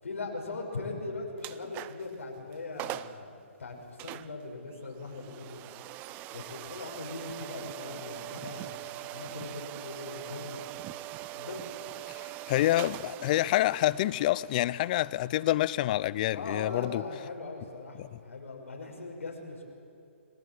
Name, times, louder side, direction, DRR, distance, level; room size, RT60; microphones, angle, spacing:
voice 1, 0.0-3.3 3.6-5.6 6.3-10.8 11.3-11.7 16.3-19.6, left 3 dB, 85° left, 5.9 m, -40 dB
sound 1, 1.4-2.1 2.5-2.6 2.8-3.2 4.0-16.7, right 16 dB, 25° right, 0.6 m, -43 dB
voice 2, 12.5-17.0 18.0-18.1, left 15 dB, 35° left, 0.6 m, -27 dB
29.5 x 18.5 x 7.7 m
hypercardioid pair, 140°, 7 cm